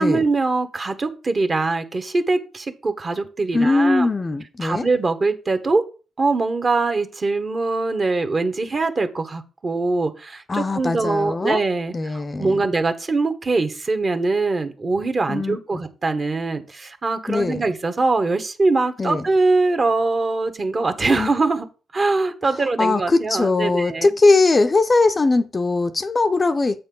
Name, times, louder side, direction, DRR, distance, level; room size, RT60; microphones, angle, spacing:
voice 1, 0.0-4.1 4.6-5.8 6.2-21.7 21.9-24.1, right 3 dB, 35° right, 1.2 m, -22 dB
voice 2, 3.5-4.9 10.5-11.6 11.9-12.7 15.3-15.6 17.3-17.6 19.0-19.2 21.2-21.3 22.8-26.8, left 3 dB, 25° left, 0.6 m, -20 dB
7.6 x 4.2 x 5.4 m
cardioid pair, 90°, 0 cm